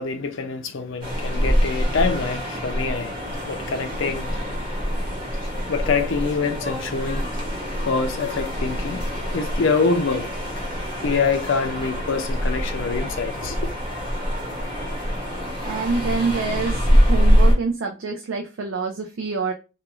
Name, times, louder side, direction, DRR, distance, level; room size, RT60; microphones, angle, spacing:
voice 1, 0.0-4.4 5.7-7.3 7.8-9.1 9.3-10.3 11.0-13.6, left 4 dB, 60° left, 0.4 m, -25 dB
sound 1, 1.0-17.5, equal, 20° right, 1.0 m, -24 dB
voice 2, 15.6-19.5, right 4 dB, 65° right, 0.4 m, -26 dB
2.4 x 2.3 x 3.0 m
head